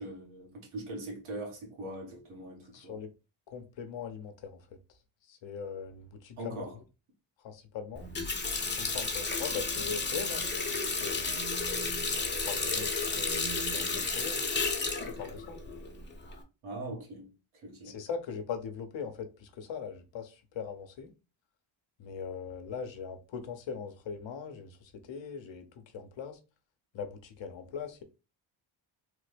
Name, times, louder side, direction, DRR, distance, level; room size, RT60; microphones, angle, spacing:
voice 1, 0.0-3.0 6.4-6.8 16.6-18.0, right 1 dB, 75° right, 1.5 m, -41 dB
voice 2, 2.7-3.1 3.5-4.6 5.3-6.6 7.4-8.1 8.7-11.3 12.4-14.5 15.1-15.6 17.8-21.1 22.0-25.7 25.9-26.4 26.9-28.0, left 6 dB, 65° left, 0.8 m, -40 dB
Water tap faucet, 7.9-16.4, left 3 dB, 20° left, 0.8 m, -32 dB
3.3 x 2.1 x 3.2 m
cardioid pair, 70°, 49 cm